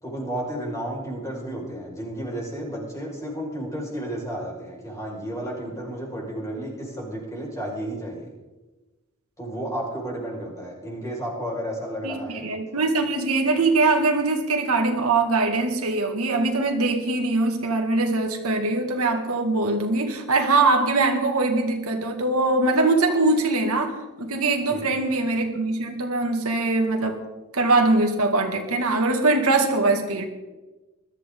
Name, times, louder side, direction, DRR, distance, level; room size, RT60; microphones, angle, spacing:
voice 1, 0.0-8.3 9.4-12.5 23.1-23.2 24.7-25.1, right 1 dB, 15° left, -2 dB, 5.5 m, -32 dB
voice 2, 12.0-27.2 27.5-30.3, right 3 dB, 80° right, 3 dB, 2.2 m, -22 dB
21.5 x 13.5 x 3.9 m, 1.1 s
head